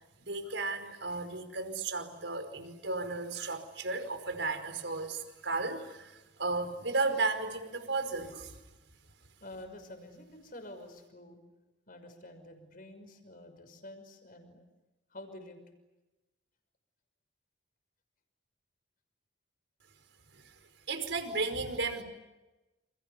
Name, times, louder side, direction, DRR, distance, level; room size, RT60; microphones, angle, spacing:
voice 1, 0.2-8.5 20.9-22.0, right 3 dB, 85° right, 8 dB, 5.0 m, -34 dB
voice 2, 9.4-11.4 11.9-14.6 15.1-15.6, left 1 dB, 50° left, 7 dB, 6.1 m, -49 dB
30.0 x 28.5 x 6.9 m, 1.1 s
head